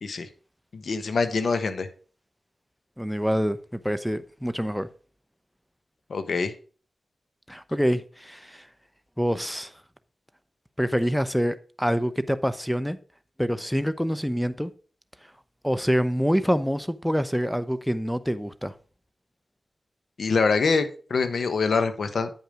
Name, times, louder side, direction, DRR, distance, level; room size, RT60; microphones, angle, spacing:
voice 1, 0.7-1.9 6.1-6.5 20.2-22.3, left 4 dB, 80° left, 1.0 m, -24 dB
voice 2, 3.0-4.9 7.5-8.6 9.2-9.7 10.8-13.0 13.4-14.7 15.6-18.7, equal, ahead, 0.7 m, -26 dB
9.0 x 5.4 x 4.9 m
cardioid pair, 40°, 0 cm